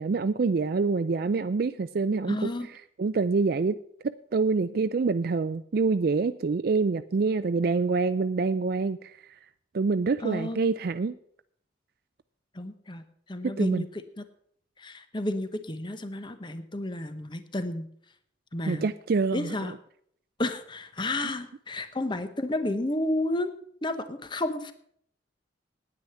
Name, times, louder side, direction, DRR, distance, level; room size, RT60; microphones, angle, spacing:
voice 1, 0.0-2.5 3.0-3.8 4.0-9.2 9.7-11.1 13.4-13.8 18.7-19.7, right 4 dB, 55° right, 11 dB, 0.4 m, -26 dB
voice 2, 2.3-2.7 10.2-10.6 12.5-14.2 14.8-17.9 18.5-18.9 19.3-19.7 20.4-23.5 23.8-24.7, left 1 dB, 25° left, 10 dB, 0.9 m, -31 dB
9.8 x 9.7 x 6.9 m, 0.65 s
head